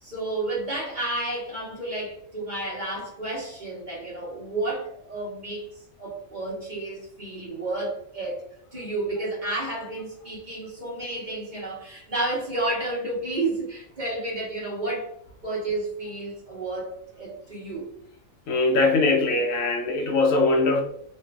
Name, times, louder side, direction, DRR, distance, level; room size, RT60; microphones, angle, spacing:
voice 1, 0.0-5.7 6.0-8.4 8.7-15.1 15.4-17.9, right 2 dB, 40° right, -6 dB, 1.1 m, -31 dB
voice 2, 18.5-20.8, left 3 dB, 80° left, 2 dB, 1.0 m, -21 dB
3.1 x 2.4 x 2.3 m, 0.69 s
omnidirectional pair, 1.4 m